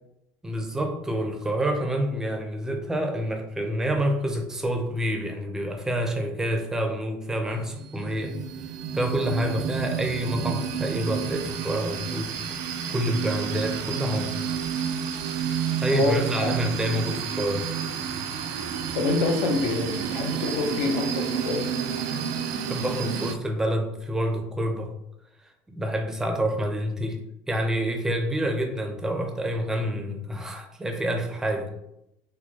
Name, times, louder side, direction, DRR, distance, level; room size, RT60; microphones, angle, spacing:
voice 1, 0.4-8.4 8.9-12.3 12.9-14.3 15.8-17.7 22.0-22.2 22.6-24.9 25.7-27.2 27.5-31.7, right 1 dB, 10° right, 3 dB, 0.5 m, -27 dB
sound 1, 7.5-23.3, right 7 dB, 65° right, 0.4 m, -30 dB
voice 2, 15.9-16.5 18.9-21.7, left 3 dB, 70° left, 3 dB, 0.7 m, -26 dB
4.3 x 2.2 x 2.8 m, 0.83 s
cardioid pair, 135°, 6 cm